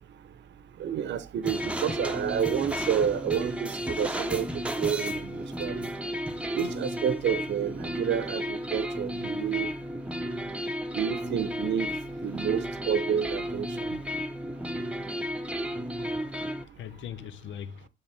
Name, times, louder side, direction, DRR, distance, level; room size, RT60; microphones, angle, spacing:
voice 1, 0.8-4.5 4.8-5.3 5.6-5.8 6.5-9.7 11.0-11.9 12.2-13.7, right 8 dB, 65° right, 0.8 m, -29 dB
sound 1, 1.4-16.6, equal, 5° right, 0.8 m, -33 dB
voice 2, 15.9-17.9, left 9 dB, 70° left, 0.6 m, -42 dB
6.9 x 5.6 x 3.4 m
cardioid pair, 90°, 20 cm